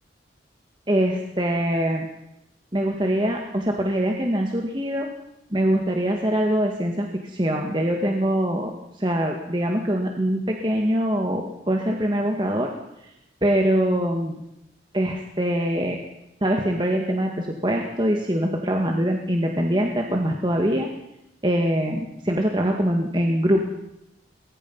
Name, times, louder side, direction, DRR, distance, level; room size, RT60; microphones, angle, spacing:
voice 1, 0.9-2.1 2.7-5.1 5.5-8.7 9.0-12.7 13.4-14.4 14.9-16.0 16.4-20.9 21.4-23.7, equal, 25° right, 1 dB, 2.0 m, -23 dB
23.0 x 21.5 x 5.7 m, 0.83 s
head